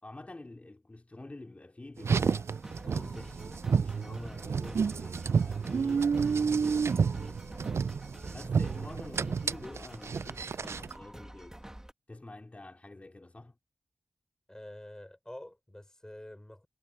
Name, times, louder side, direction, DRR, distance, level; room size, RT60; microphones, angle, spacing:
voice 1, 0.0-7.5 8.3-11.6 12.1-13.6, left 2 dB, 30° left, 4.1 m, -47 dB
Car, 2.0-11.0, right 6 dB, 70° right, 0.4 m, -30 dB
sound 1, 2.5-11.9, right 1 dB, 10° right, 2.0 m, -48 dB
voice 2, 14.5-16.7, left 1 dB, 15° left, 4.9 m, -47 dB
wide cardioid pair, 90°, 5 cm